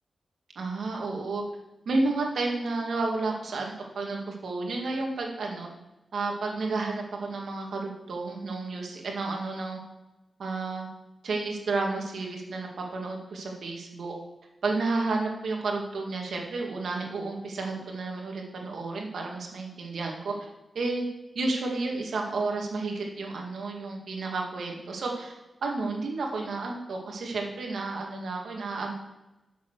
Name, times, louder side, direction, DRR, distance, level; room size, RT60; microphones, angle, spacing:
voice 1, 0.6-1.4 1.9-5.7 6.1-9.8 10.4-10.9 11.2-14.1 14.6-20.5 20.7-21.1 21.3-25.3 25.6-28.9, right 3 dB, 75° right, 0 dB, 2.3 m, -31 dB
11.0 x 7.0 x 6.6 m, 1.0 s
wide cardioid pair, 145°, 0 cm